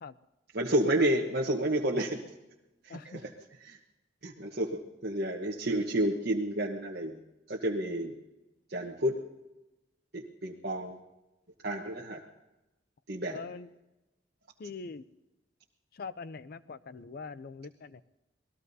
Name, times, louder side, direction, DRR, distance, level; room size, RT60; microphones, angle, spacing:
voice 1, 0.5-2.2 2.8-3.0 3.6-3.8 4.2-7.2 7.5-8.1 8.7-9.2 10.1-11.0 11.6-12.2 13.1-13.4, right 1 dB, 60° right, -2 dB, 1.2 m, -30 dB
voice 2, 2.9-3.2 13.3-13.7 14.6-15.0 15.9-18.0, left 4 dB, 55° left, 15 dB, 0.5 m, -43 dB
27.0 x 19.5 x 2.8 m, 1.0 s
head